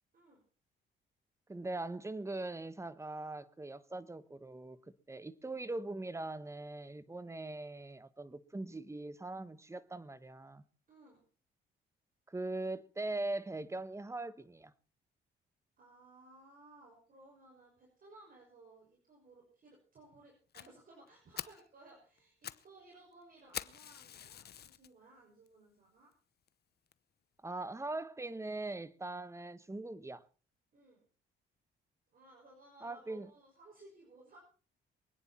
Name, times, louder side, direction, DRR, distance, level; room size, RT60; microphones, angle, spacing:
voice 1, 1.5-4.8 5.1-10.6 12.3-14.7 27.4-30.2 32.8-33.3, right 2 dB, 15° right, 1.2 m, -41 dB
voice 2, 10.9-11.2 15.8-26.1 30.7-31.0 32.1-34.4, right 2 dB, 45° right, 6.1 m, -59 dB
Fire, 20.5-20.7 21.1-21.2 21.4-21.7 22.2-22.7 22.9-23.0 23.5-24.9 25.5-25.6 26.1-26.2 26.5-26.6 26.9-27.0, left 9 dB, 55° left, 0.9 m, -45 dB
24.0 x 9.8 x 4.3 m
cardioid pair, 90°, 20 cm